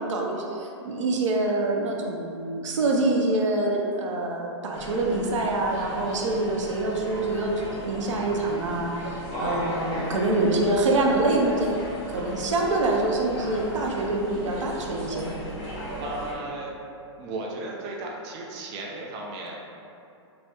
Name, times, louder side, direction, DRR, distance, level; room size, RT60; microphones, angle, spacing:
voice 1, 0.0-15.3, right 2 dB, 80° right, 0 dB, 0.6 m, -26 dB
sound 1, 4.7-16.3, equal, 55° left, 1.0 m, -36 dB
voice 2, 9.3-9.8 16.0-16.7 17.2-19.8, right 2 dB, 30° right, -2 dB, 0.4 m, -36 dB
4.6 x 2.0 x 2.8 m, 2.7 s
hypercardioid pair, 145°, 16 cm